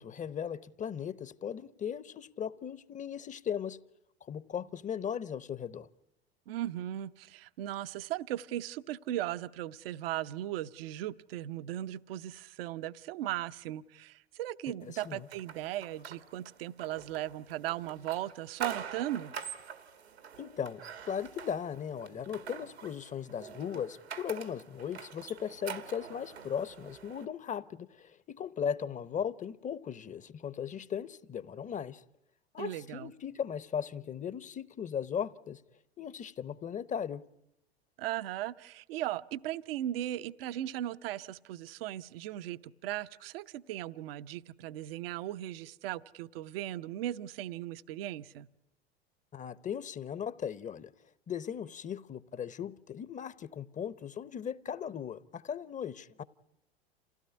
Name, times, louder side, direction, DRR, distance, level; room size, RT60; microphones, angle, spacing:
voice 1, 0.0-3.8 4.2-5.9 15.0-15.3 20.4-32.0 32.5-35.6 36.0-37.2 49.3-50.9 51.3-56.2, left 8 dB, 25° left, 0.8 m, -37 dB
voice 2, 6.5-19.3 32.6-33.1 38.0-48.5, right 13 dB, 65° right, 0.8 m, -37 dB
sound 1, 15.0-27.2, right 7 dB, 90° right, 2.0 m, -46 dB
27.5 x 16.5 x 9.6 m
hypercardioid pair, 85°, 31 cm